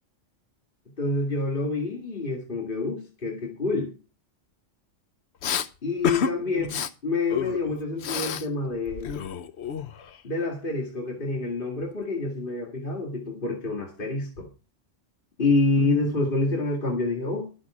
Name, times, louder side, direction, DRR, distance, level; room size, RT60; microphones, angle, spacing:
voice 1, 1.0-3.9 5.8-9.1 10.2-14.5 15.4-17.7, left 3 dB, 45° left, 2.2 m, -27 dB
Respiratory sounds, 5.4-5.7 6.0-6.3 6.6-6.9 7.3-8.5 8.7-10.2, left 8 dB, 65° left, 1.0 m, -29 dB
12.5 x 8.6 x 4.8 m
omnidirectional pair, 1.2 m